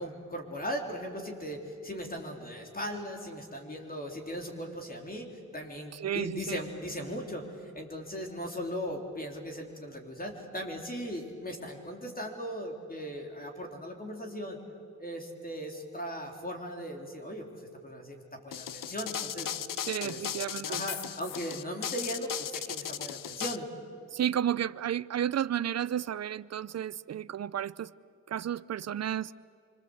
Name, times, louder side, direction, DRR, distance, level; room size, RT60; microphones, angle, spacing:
voice 1, 0.0-14.6 15.0-19.5 20.0-20.2 20.6-23.7, equal, 30° left, 3.9 m, -38 dB
voice 2, 5.9-6.6 19.8-20.8 24.1-27.9 28.3-29.3, right 10 dB, 55° right, 0.6 m, -32 dB
sound 1, 18.5-23.6, left 10 dB, 90° left, 0.7 m, -36 dB
26.0 x 25.5 x 8.0 m
cardioid pair, 75°, 31 cm